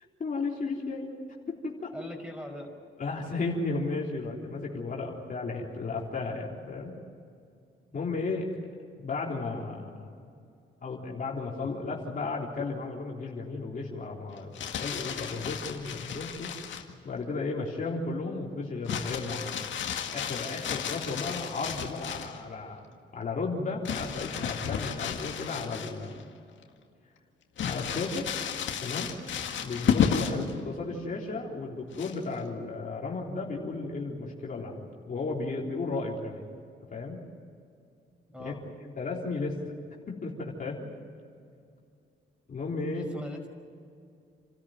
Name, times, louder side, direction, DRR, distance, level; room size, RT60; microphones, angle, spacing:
voice 1, 0.2-1.1 1.5-1.9 3.0-7.0 7.9-8.5 9.0-10.1 10.8-16.5 17.0-19.6 20.1-22.8 23.1-26.2 27.6-28.3 28.8-29.1 29.6-36.5 36.9-37.2 38.4-38.5 39.0-39.6 40.1-40.8 42.5-43.1, left 3 dB, 40° left, -2 dB, 3.8 m, -34 dB
voice 2, 1.9-2.7 7.9-8.0 30.2-30.5 38.3-38.6 42.9-43.5, left 1 dB, 5° right, 3 dB, 5.5 m, -41 dB
Crumpling crinkling, 14.4-16.9 18.9-22.4 23.9-26.2 26.6-26.7 27.6-30.5 31.9-32.4, left 8 dB, 70° left, 2.1 m, -32 dB
29.0 x 13.5 x 9.3 m, 2.4 s
cardioid pair, 90°, 20 cm